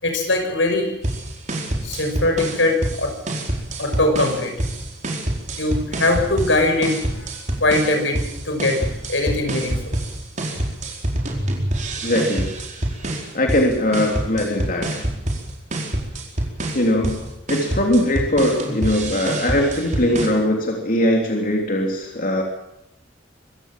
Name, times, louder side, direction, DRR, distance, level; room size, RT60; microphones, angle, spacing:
voice 1, 0.0-0.9 1.8-3.1 3.8-4.5 5.6-7.3 7.6-8.8 9.1-9.9, left 2 dB, 85° left, 4 dB, 6.1 m, -21 dB
sound 1, 1.0-20.3, right 1 dB, 40° right, 4.5 m, -27 dB
voice 2, 12.0-12.5 13.3-15.0 16.7-17.2 17.5-22.4, left 1 dB, 50° left, 1 dB, 3.3 m, -20 dB
24.5 x 16.5 x 7.6 m, 0.84 s
head